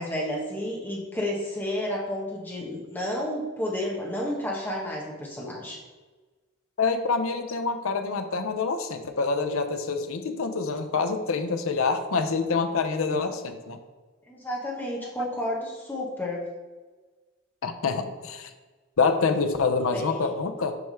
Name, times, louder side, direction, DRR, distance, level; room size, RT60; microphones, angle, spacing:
voice 1, 0.0-5.8 14.3-16.4 19.5-19.7 19.9-20.3, left 1 dB, 10° left, -3 dB, 1.2 m, -31 dB
voice 2, 6.8-13.8 15.0-15.1 17.6-18.5 19.0-20.8, left 4 dB, 70° left, 7 dB, 0.6 m, -26 dB
6.2 x 3.5 x 5.6 m, 1.3 s
head